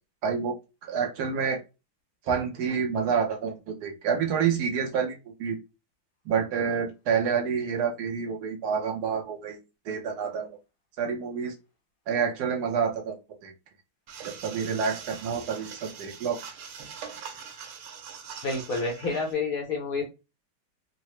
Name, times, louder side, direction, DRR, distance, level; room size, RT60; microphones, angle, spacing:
voice 1, 0.2-0.5 0.8-1.6 2.2-5.6 6.2-9.6 9.8-10.6 11.0-11.5 12.1-13.5 14.2-16.4, right 6 dB, 65° right, 3 dB, 1.1 m, -28 dB
sound 1, 14.1-19.3, right 7 dB, 85° right, 1.6 m, -42 dB
voice 2, 18.4-20.0, left 3 dB, 65° left, 1 dB, 0.9 m, -29 dB
3.8 x 2.1 x 3.0 m, 0.27 s
omnidirectional pair, 2.3 m